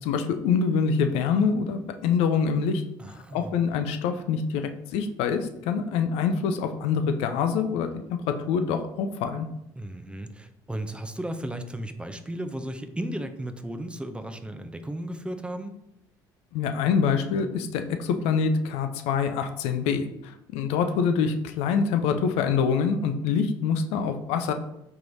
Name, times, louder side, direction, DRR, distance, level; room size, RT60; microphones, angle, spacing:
voice 1, 0.0-2.8 3.1-7.9 8.3-9.5 16.5-24.5, left 6 dB, 70° left, 8 dB, 0.4 m, -25 dB
voice 2, 3.0-3.5 9.8-15.7, right 1 dB, 10° right, 7 dB, 0.4 m, -35 dB
4.6 x 3.2 x 2.6 m, 0.83 s
hypercardioid pair, 65°, 11 cm